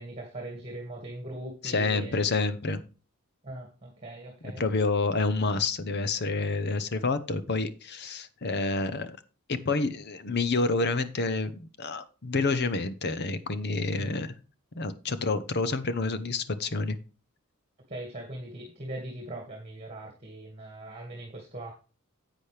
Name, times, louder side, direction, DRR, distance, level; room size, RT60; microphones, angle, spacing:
voice 1, 0.0-2.2 3.4-4.6 13.9-14.1 17.9-21.7, right 1 dB, 25° right, 1 dB, 2.0 m, -40 dB
voice 2, 1.6-2.8 4.6-9.1 9.5-14.3 14.8-17.0, left 3 dB, 50° left, 13 dB, 0.8 m, -28 dB
10.0 x 8.3 x 3.3 m, 0.34 s
head